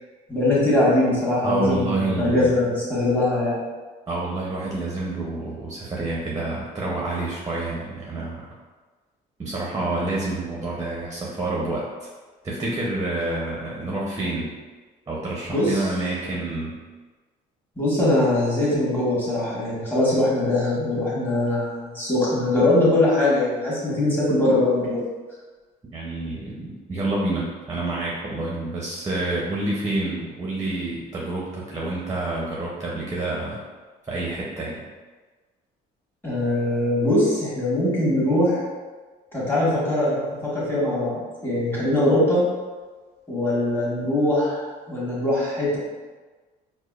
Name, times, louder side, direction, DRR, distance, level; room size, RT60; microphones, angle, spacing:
voice 1, 0.3-3.6 15.5-15.8 17.8-25.0 36.2-38.6 39.3-42.4 43.3-45.8, left 1 dB, 10° left, -8 dB, 1.5 m, -22 dB
voice 2, 1.4-2.6 4.1-8.5 9.4-12.1 12.4-14.5 15.1-16.8 25.9-33.6 34.1-34.8, right 2 dB, 20° right, -4 dB, 0.6 m, -28 dB
4.7 x 2.0 x 2.4 m, 1.3 s
cardioid pair, 110°, 17 cm